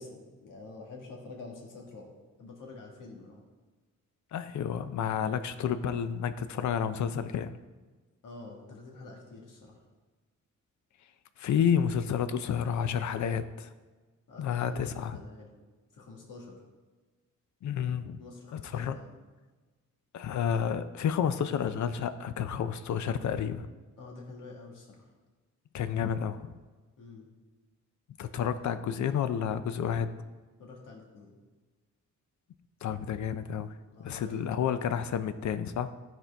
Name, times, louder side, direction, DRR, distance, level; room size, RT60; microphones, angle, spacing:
voice 1, 0.0-2.1 2.4-3.4 8.2-9.8 14.3-15.5 15.9-16.6 18.2-19.1 24.0-25.1 27.0-27.3 30.6-31.4 33.9-34.6, left 3 dB, 85° left, -1 dB, 1.7 m, -47 dB
voice 2, 4.3-7.6 11.4-13.7 14.4-15.2 17.6-18.2 18.5-19.0 20.1-23.7 25.7-26.5 28.2-30.1 32.8-33.7 34.0-35.9, left 8 dB, 65° left, 12 dB, 0.5 m, -30 dB
13.0 x 4.4 x 3.4 m, 1.3 s
wide cardioid pair, 175°, 31 cm